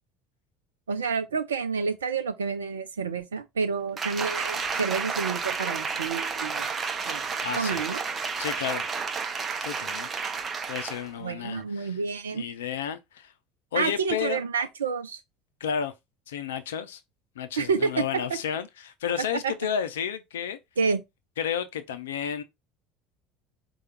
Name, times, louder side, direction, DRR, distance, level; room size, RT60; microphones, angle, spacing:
voice 1, 0.9-6.7 7.1-7.2 7.6-8.0 11.2-12.5 13.7-15.2 17.6-18.0 19.4-19.5 20.8-21.0, right 5 dB, 80° right, 0.5 m, -29 dB
Applause, 4.0-11.1 11.5-11.6, right 5 dB, 30° right, 0.7 m, -31 dB
voice 2, 7.4-7.8 8.4-8.8 9.6-10.1 10.7-12.0 12.3-13.3 13.7-14.4 15.6-15.9 16.3-17.0 17.4-20.6 21.4-22.4, left 8 dB, 75° left, 0.5 m, -32 dB
4.8 x 2.3 x 4.3 m
figure-of-eight pair, 65°, 0 cm